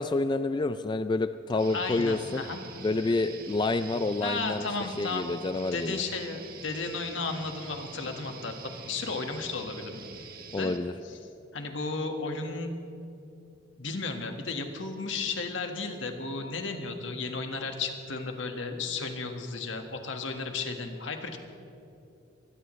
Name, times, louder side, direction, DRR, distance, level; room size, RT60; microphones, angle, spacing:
voice 1, 0.0-2.4 2.8-4.7 5.0-6.0 10.5-10.9, left 3 dB, 25° left, 10 dB, 0.3 m, -28 dB
sound 1, 1.6-10.8, right 4 dB, 50° right, 1.4 m, -45 dB
voice 2, 1.7-2.6 3.0-3.2 4.2-5.3 5.7-10.0 10.5-10.8 11.0-11.2 11.5-12.7 13.8-21.4, left 3 dB, 75° left, 4 dB, 1.7 m, -34 dB
23.5 x 17.5 x 3.2 m, 2.7 s
head